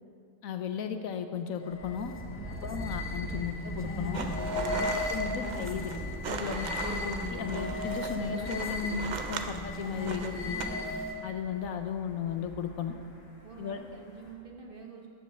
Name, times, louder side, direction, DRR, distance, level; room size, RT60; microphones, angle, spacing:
voice 1, 0.4-2.1 2.5-4.3 4.7-5.9 6.3-10.6 11.2-12.9 13.6-13.8, left 7 dB, 70° left, 7 dB, 1.0 m, -35 dB
sound 1, 1.6-11.3, left 2 dB, 15° left, 0.4 m, -36 dB
Thunder, 1.8-14.3, equal, 45° left, 1.8 m, -44 dB
sound 2, 4.1-10.7, right 5 dB, 60° right, 0.4 m, -39 dB
voice 2, 10.5-10.9 13.4-15.1, right 5 dB, 40° right, 1 dB, 1.0 m, -48 dB
14.0 x 5.3 x 6.7 m, 2.3 s
omnidirectional pair, 1.6 m